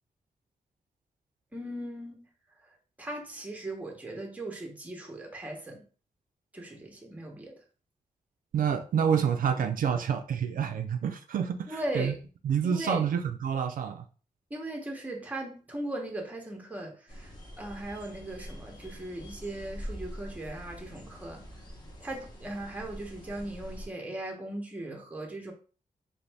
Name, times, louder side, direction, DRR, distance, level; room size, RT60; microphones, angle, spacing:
voice 1, 1.5-2.3 2.6-5.8 6.5-7.5 11.7-12.2 12.6-13.1 14.5-21.4 22.0-25.5, right 1 dB, 10° right, 0.8 m, -38 dB
voice 2, 8.5-12.2 12.4-14.0, right 7 dB, 75° right, 0.4 m, -28 dB
sound 1, 17.1-23.9, equal, 30° left, 0.9 m, -44 dB
4.0 x 2.6 x 3.3 m
wide cardioid pair, 175°, 14 cm